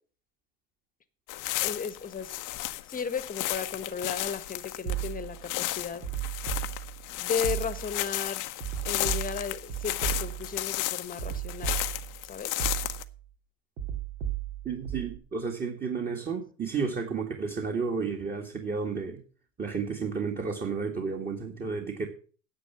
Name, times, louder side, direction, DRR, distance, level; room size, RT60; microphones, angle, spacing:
sound 1, 1.3-13.0, left 16 dB, 40° left, 1.0 m, -34 dB
voice 1, 1.6-2.4 2.9-6.1 7.2-8.6 8.8-11.7 12.3-12.5, left 6 dB, 15° left, 1.5 m, -35 dB
sound 2, 4.9-5.5 6.0-7.1 7.4-8.1 8.6-10.6 11.2-12.2 12.6-13.2 13.8-15.2, right 11 dB, 60° right, 3.1 m, -34 dB
voice 2, 14.6-19.2 19.6-22.1, right 5 dB, 20° right, 2.1 m, -32 dB
10.0 x 8.2 x 7.1 m
hypercardioid pair, 100°, 49 cm